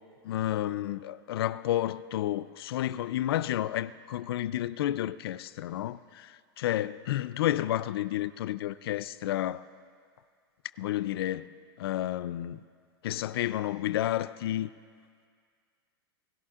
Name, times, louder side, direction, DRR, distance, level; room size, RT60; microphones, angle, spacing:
voice 1, 0.2-9.7 10.8-11.5 11.8-12.6 13.0-14.7, left 13 dB, 80° left, 0.5 m, -31 dB
28.0 x 17.0 x 2.5 m
hypercardioid pair, 120°, 13 cm